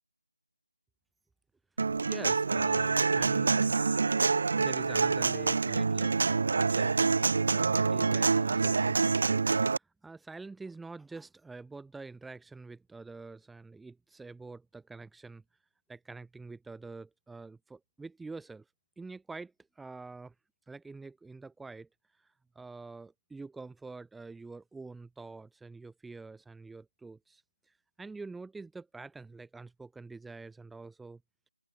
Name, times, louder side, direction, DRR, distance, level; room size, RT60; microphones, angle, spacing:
Human voice / Acoustic guitar, 1.8-9.8, right 4 dB, 45° right, 0.5 m, -26 dB
voice 1, 1.9-3.8 4.2-15.4 15.9-18.6 19.0-20.3 20.7-21.9 22.5-27.4 28.0-31.2, right 3 dB, ahead, 2.9 m, -46 dB
figure-of-eight pair, 165°, 0 cm